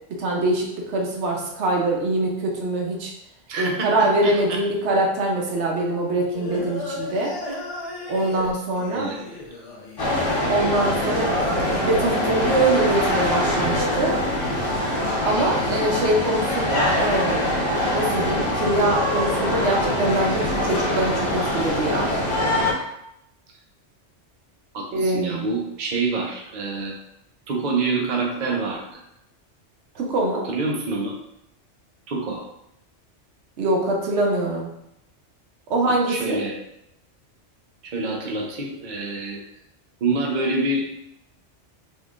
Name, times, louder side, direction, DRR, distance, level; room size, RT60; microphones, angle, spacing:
voice 1, 0.2-3.1 3.6-7.3 8.1-9.1 10.5-14.2 15.3-17.6 17.9-22.3 24.9-25.5 29.9-30.5 33.6-34.7 35.7-36.4, right 1 dB, 70° right, -1 dB, 1.0 m, -23 dB
voice 2, 3.5-4.6 8.9-9.2 15.8-16.1 24.7-26.9 27.5-29.0 30.4-31.2 32.1-32.4 35.8-36.6 37.8-39.4 40.0-40.8, right 3 dB, 50° right, 0 dB, 0.6 m, -27 dB
Singing, 6.3-11.7, left 2 dB, 40° left, 0.6 m, -34 dB
sound 1, 10.0-22.7, left 1 dB, 85° left, 1.6 m, -23 dB
3.6 x 3.1 x 2.4 m, 0.81 s
omnidirectional pair, 1.2 m